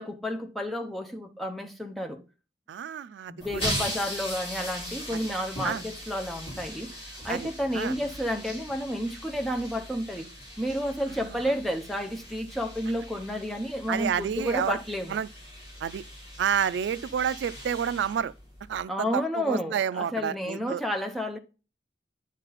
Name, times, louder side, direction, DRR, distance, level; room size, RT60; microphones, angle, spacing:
voice 1, 0.0-2.2 3.3-10.3 10.6-15.2 18.9-21.4, equal, ahead, 0.8 m, -31 dB
voice 2, 2.7-3.9 5.1-5.2 5.6-5.8 7.3-7.9 11.3-11.4 13.9-14.8 15.1-15.3 15.8-16.0 16.4-18.3 18.7-20.8, right 8 dB, 85° right, 0.3 m, -30 dB
sound 1, 3.4-18.8, equal, 30° left, 3.8 m, -39 dB
9.7 x 4.1 x 4.1 m
head